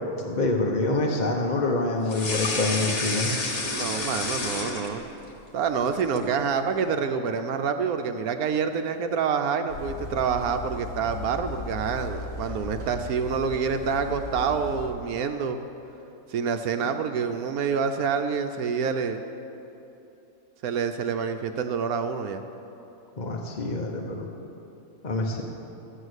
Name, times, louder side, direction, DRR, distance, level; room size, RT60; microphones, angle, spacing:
voice 1, 0.2-3.3 23.2-24.3 25.0-25.4, left 2 dB, 35° left, 0 dB, 0.9 m, -26 dB
sound 1, 2.1-5.3 5.6-6.3, left 3 dB, 70° left, 1.9 m, -29 dB
voice 2, 3.7-5.0 5.5-15.6 16.3-19.2 20.6-22.4, right 6 dB, 80° right, 7 dB, 1.1 m, -27 dB
sound 2, 9.7-14.9, left 2 dB, 25° right, 2.9 m, -37 dB
13.0 x 8.2 x 8.0 m, 2.9 s
omnidirectional pair, 1.5 m